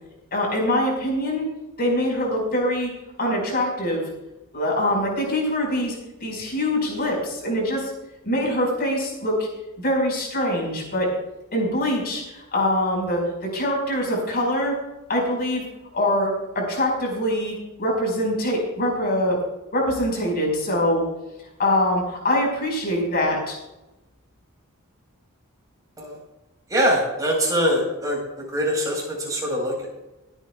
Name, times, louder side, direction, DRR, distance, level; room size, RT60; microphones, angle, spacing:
voice 1, 0.3-1.5 1.8-2.9 3.2-4.1 4.5-7.9 8.2-9.5 9.8-11.1 11.5-14.7 15.1-15.6 15.9-19.4 19.7-21.0 21.6-23.6, left 1 dB, 45° left, -1 dB, 5.1 m, -24 dB
voice 2, 26.7-29.9, equal, 15° right, -2 dB, 4.6 m, -23 dB
24.5 x 9.2 x 2.4 m, 0.99 s
head